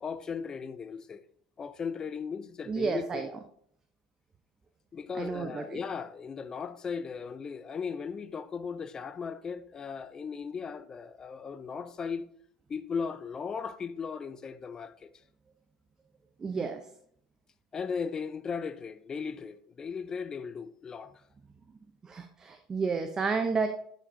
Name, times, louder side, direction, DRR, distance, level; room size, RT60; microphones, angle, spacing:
voice 1, 0.0-1.2 1.6-3.3 4.9-12.2 12.7-15.1 17.7-21.1, left 6 dB, 30° left, 0.4 m, -37 dB
voice 2, 2.7-3.3 5.2-5.6 16.4-16.8 22.0-23.7, right 4 dB, 25° right, 0.6 m, -31 dB
8.6 x 5.0 x 2.6 m
hypercardioid pair, 75°, 2 cm